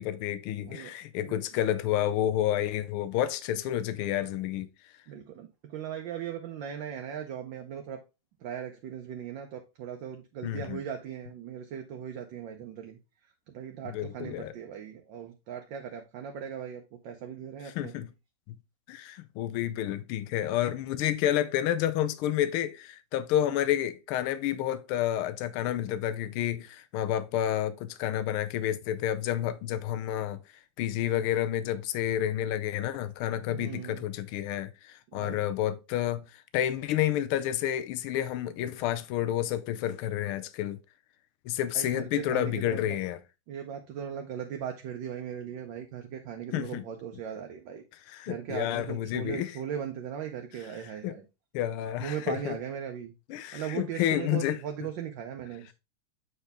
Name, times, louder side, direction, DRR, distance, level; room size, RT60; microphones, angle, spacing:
voice 1, 0.0-4.7 10.4-10.8 13.9-14.5 17.7-18.1 18.9-30.4 30.8-36.2 36.5-40.8 41.5-43.2 46.5-46.8 48.1-49.5 51.0-51.1 51.5-52.6 53.3-54.6, left 11 dB, 80° left, 1.5 m, -30 dB
voice 2, 0.6-1.6 5.1-8.0 8.4-18.1 33.5-34.1 35.1-35.4 41.7-43.0 43.5-47.8 48.3-51.2 52.0-53.1 53.5-55.7, right 8 dB, 70° right, 1.3 m, -39 dB
7.8 x 4.5 x 3.4 m
omnidirectional pair, 2.3 m